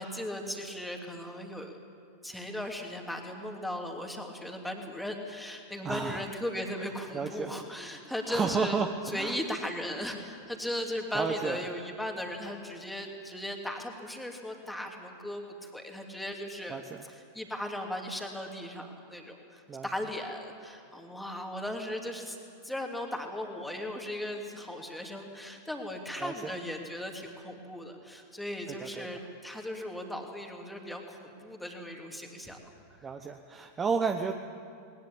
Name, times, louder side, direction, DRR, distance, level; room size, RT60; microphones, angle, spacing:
voice 1, 0.0-1.8 2.2-22.4 22.6-32.7 33.0-33.1, left 1 dB, 5° left, 2 dB, 2.9 m, -37 dB
voice 2, 5.8-6.2 7.1-7.5 8.3-9.4 11.1-11.6 16.7-17.0 19.7-19.9 26.2-26.5 28.7-29.1 33.0-34.3, right 5 dB, 20° right, 6 dB, 1.0 m, -32 dB
20.5 x 20.0 x 8.8 m, 2.7 s
figure-of-eight pair, 90°, 0 cm